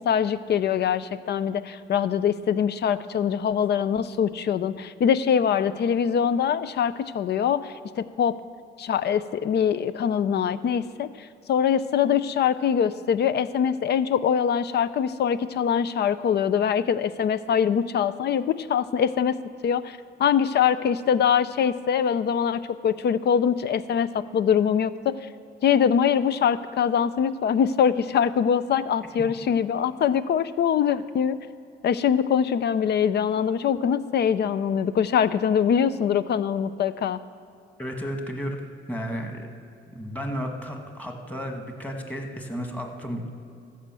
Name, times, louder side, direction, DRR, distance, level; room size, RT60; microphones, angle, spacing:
voice 1, 0.0-8.3 8.8-19.4 19.6-25.2 25.6-31.4 31.8-37.2, left 8 dB, 60° left, 14 dB, 0.5 m, -23 dB
voice 2, 37.8-38.6 38.9-39.5 39.9-43.4, equal, 5° left, 2 dB, 1.7 m, -33 dB
14.0 x 5.6 x 7.5 m, 2.5 s
cardioid pair, 90°, 20 cm